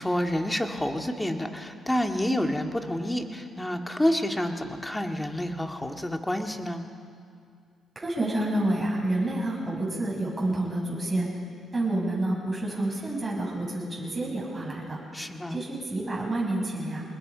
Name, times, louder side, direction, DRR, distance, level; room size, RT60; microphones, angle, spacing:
voice 1, 0.0-6.8 15.1-15.6, left 1 dB, 10° left, 4 dB, 2.0 m, -28 dB
voice 2, 7.9-11.3 11.7-15.0 15.5-17.0, right 1 dB, 20° right, -4 dB, 6.8 m, -29 dB
26.0 x 20.5 x 5.2 m, 2.3 s
supercardioid pair, 65°, 0 cm